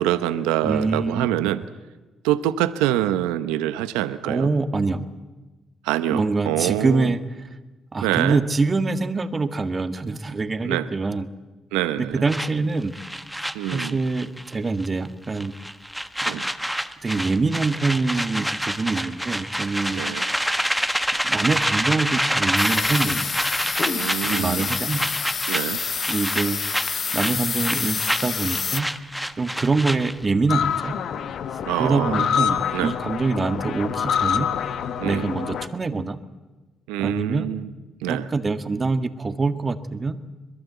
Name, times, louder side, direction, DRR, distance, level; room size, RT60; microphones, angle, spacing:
voice 1, 0.0-1.6 2.2-4.5 5.8-7.1 8.0-8.4 10.6-10.9 11.7-12.2 13.5-14.0 16.3-16.4 19.9-20.3 23.8-24.7 25.5-25.8 31.7-32.9 35.0-35.3 36.9-37.7 38.0-38.3, right 13 dB, 90° right, 12 dB, 0.8 m, -25 dB
voice 2, 0.6-1.3 4.2-5.1 6.1-7.2 7.9-11.3 12.0-12.9 13.7-15.5 16.2-16.4 17.0-20.0 21.2-23.3 24.2-25.0 26.1-26.6 26.9-28.9 29.4-30.9 31.8-34.5 35.0-36.2 37.0-37.5 38.1-40.2, right 3 dB, 35° right, 9 dB, 1.9 m, -25 dB
sound 1, 12.3-14.6 14.8-15.1 15.4-30.3, equal, ahead, 1.3 m, -27 dB
sound 2, 22.6-28.8, left 6 dB, 50° left, 0.8 m, -28 dB
sound 3, 30.5-35.7, left 8 dB, 70° left, 1.2 m, -26 dB
23.0 x 22.0 x 8.2 m, 1.2 s
supercardioid pair, 60°, 0 cm